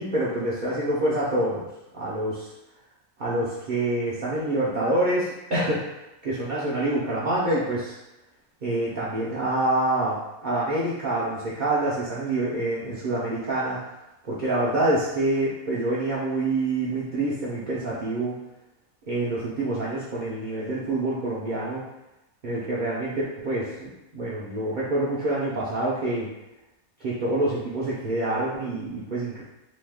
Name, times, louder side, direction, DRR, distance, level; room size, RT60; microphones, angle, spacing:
voice 1, 0.0-1.6 1.9-2.5 3.2-5.8 6.2-8.0 8.6-13.8 14.2-18.4 19.1-21.8 22.4-26.3 27.0-29.4, right 1 dB, 85° right, -8 dB, 0.4 m, -26 dB
3.0 x 2.1 x 3.3 m, 0.96 s
omnidirectional pair, 1.5 m